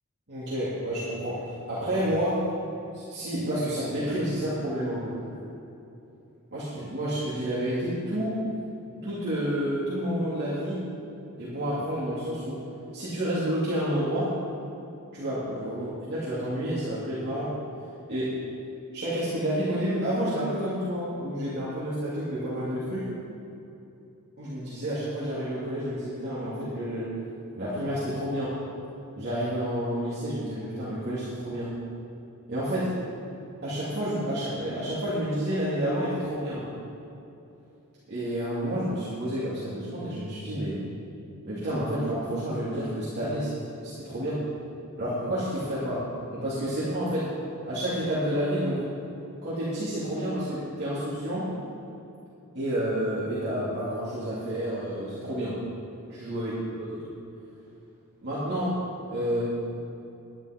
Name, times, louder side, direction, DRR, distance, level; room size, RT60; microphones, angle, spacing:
voice 1, 0.3-2.5 2.9-5.1 6.5-8.4 9.0-10.8 11.4-12.6 12.9-14.3 15.1-17.5 18.1-18.3 18.9-23.1 24.4-27.1 27.6-28.5 29.2-31.7 32.5-32.9 33.6-36.6 38.1-40.8 41.4-44.4 45.0-47.3 47.6-48.8 49.4-51.5 52.5-55.6 56.1-56.5 58.2-58.8 59.1-59.4, equal, 50° right, -11 dB, 2.7 m, -29 dB
11.0 x 10.5 x 4.4 m, 2.8 s
head